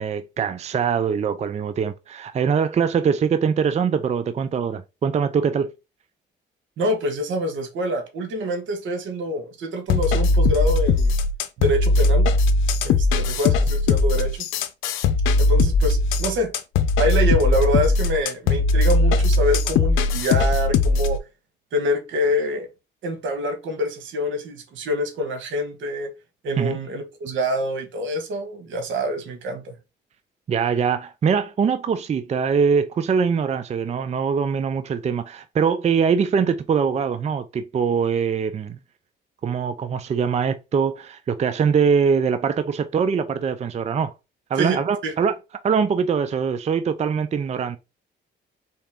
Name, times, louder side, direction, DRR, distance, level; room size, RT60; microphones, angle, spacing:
voice 1, 0.0-5.7 26.6-26.8 30.5-38.8 39.4-44.1 44.5-45.4 45.6-47.8, right 6 dB, 35° right, 0.4 m, -22 dB
voice 2, 6.8-11.1 11.6-12.3 12.8-14.5 15.4-16.5 17.0-21.2 21.7-22.7 23.0-26.1 26.4-29.7 44.6-44.8 45.0-45.1, equal, 75° right, 1.4 m, -25 dB
sound 1, 9.9-21.2, left 3 dB, 90° left, 0.6 m, -19 dB
4.2 x 3.4 x 3.6 m
cardioid pair, 90°, 20 cm